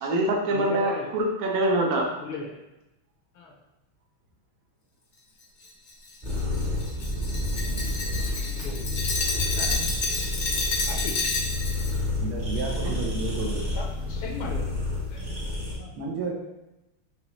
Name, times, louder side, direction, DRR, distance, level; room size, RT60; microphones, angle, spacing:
voice 1, 0.0-2.1 12.8-12.9, right 1 dB, 65° right, 0 dB, 1.0 m, -24 dB
voice 2, 0.5-1.1 2.2-2.5 3.3-3.5 8.4-8.8 9.6-9.8 10.9-11.1 13.7-14.7 15.1-15.4 15.8-15.9, left 4 dB, 75° left, 0 dB, 1.5 m, -37 dB
Glass, 5.6-12.0, left 3 dB, 55° left, 0.8 m, -30 dB
sound 1, 6.2-15.8, left 2 dB, 30° right, 0.8 m, -30 dB
voice 3, 12.2-13.7 16.0-16.3, right 3 dB, 80° right, 0 dB, 1.6 m, -31 dB
5.3 x 3.0 x 3.0 m, 0.96 s
omnidirectional pair, 2.3 m